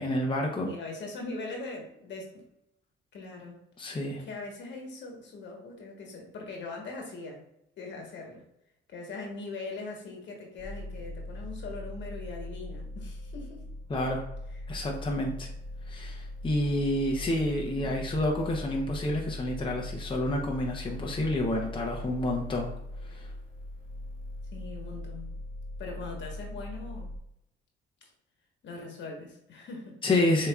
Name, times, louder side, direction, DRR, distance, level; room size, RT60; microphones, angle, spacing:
voice 1, 0.0-0.7 3.8-4.2 13.9-14.2 14.7-15.5 15.9-22.7 23.1-23.3 30.0-30.5, left 1 dB, 25° left, -1 dB, 0.8 m, -29 dB
voice 2, 0.6-2.3 3.1-3.6 4.2-7.4 7.8-8.4 8.9-13.6 24.5-25.3 25.8-27.1 28.6-30.0, left 3 dB, 65° left, 0 dB, 1.4 m, -41 dB
sound 1, 10.6-27.2, left 1 dB, 40° right, 1.0 m, -40 dB
6.8 x 2.9 x 2.4 m, 0.79 s
cardioid pair, 90°, 20 cm